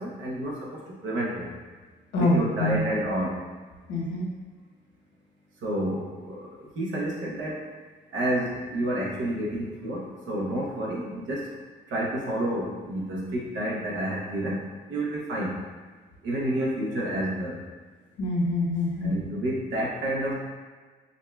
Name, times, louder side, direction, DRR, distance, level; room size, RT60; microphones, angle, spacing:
voice 1, 0.0-1.5 2.2-3.4 5.6-7.6 8.1-11.5 11.9-14.6 14.9-15.6 16.2-17.6 19.0-20.3, right 1 dB, 70° right, -3 dB, 1.0 m, -29 dB
voice 2, 2.1-2.9 3.9-4.3 18.2-19.2, left 2 dB, 75° left, -3 dB, 0.9 m, -25 dB
5.2 x 2.5 x 2.2 m, 1.5 s
cardioid pair, 90°, 20 cm